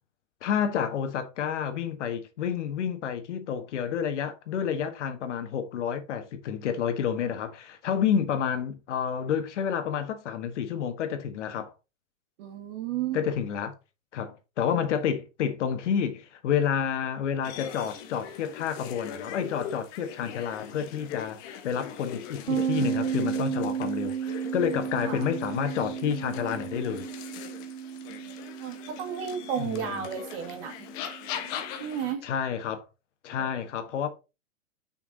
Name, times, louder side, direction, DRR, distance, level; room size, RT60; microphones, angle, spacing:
voice 1, 0.4-11.7 13.1-13.7 14.1-27.1 29.6-30.1 32.2-32.8 33.2-34.1, left 8 dB, 60° left, 1.5 m, -29 dB
voice 2, 12.4-13.2 25.0-25.3 28.1-28.3 28.6-30.8 31.8-32.3 33.4-33.6, right 9 dB, 45° right, 2.0 m, -33 dB
sound 1, 17.4-32.1, left 9 dB, 10° left, 0.3 m, -41 dB
sound 2, 22.5-31.9, right 8 dB, 85° right, 1.4 m, -34 dB
6.3 x 5.8 x 3.9 m
hypercardioid pair, 135°, 40 cm